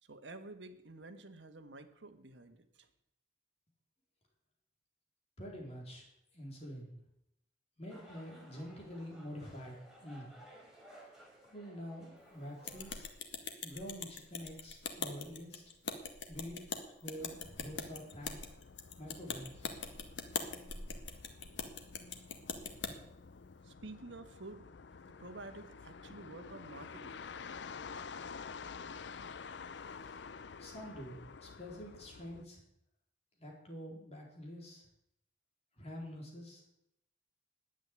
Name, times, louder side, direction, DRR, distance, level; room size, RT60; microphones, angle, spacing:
voice 1, 0.0-2.9 23.6-24.7 25.2-27.2, right 2 dB, 80° right, 7 dB, 1.5 m, -50 dB
voice 2, 5.4-6.1 6.3-6.9 7.8-9.8 10.0-10.3 11.5-13.1 13.6-15.6 16.3-16.7 16.9-18.4 19.0-19.8 29.8-30.2 30.6-32.6 33.4-34.8 35.8-36.6, equal, 35° left, -1 dB, 4.1 m, -47 dB
sound 1, 7.9-13.1, right 1 dB, 5° right, 4.2 m, -58 dB
sound 2, 12.6-22.9, left 5 dB, 85° left, 1.7 m, -42 dB
sound 3, 17.2-32.4, left 5 dB, 70° left, 0.6 m, -50 dB
10.5 x 9.1 x 9.7 m, 0.80 s
head